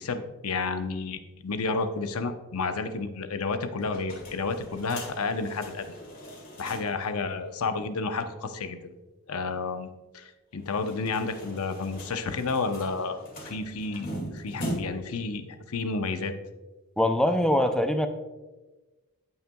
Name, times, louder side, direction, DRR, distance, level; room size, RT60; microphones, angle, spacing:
voice 1, 0.0-5.9 6.6-8.9 9.3-16.4, left 4 dB, 90° left, 8 dB, 0.7 m, -31 dB
sound 1, 3.8-7.1 7.4-7.5 7.7-7.8 10.6-15.1, equal, 40° left, 2.1 m, -40 dB
voice 2, 17.0-18.1, left 1 dB, 5° left, 7 dB, 0.4 m, -23 dB
16.5 x 5.7 x 2.3 m, 1.2 s
head